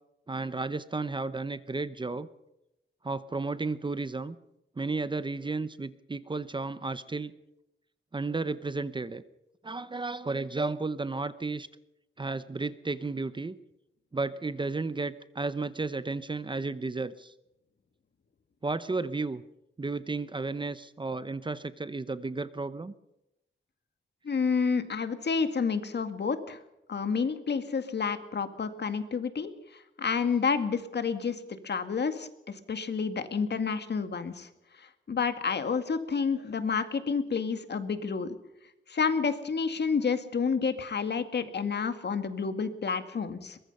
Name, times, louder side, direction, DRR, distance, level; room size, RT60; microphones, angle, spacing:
voice 1, 0.3-2.3 3.0-4.3 4.8-7.3 8.1-9.2 9.6-11.7 12.2-13.5 14.1-17.3 18.6-19.4 19.8-22.9, right 3 dB, 25° right, 14 dB, 0.8 m, -33 dB
voice 2, 24.2-26.6 26.9-34.5 34.8-38.4 38.9-43.6, left 5 dB, 55° left, 9 dB, 2.1 m, -30 dB
23.0 x 21.5 x 5.5 m, 0.87 s
wide cardioid pair, 165°, 21 cm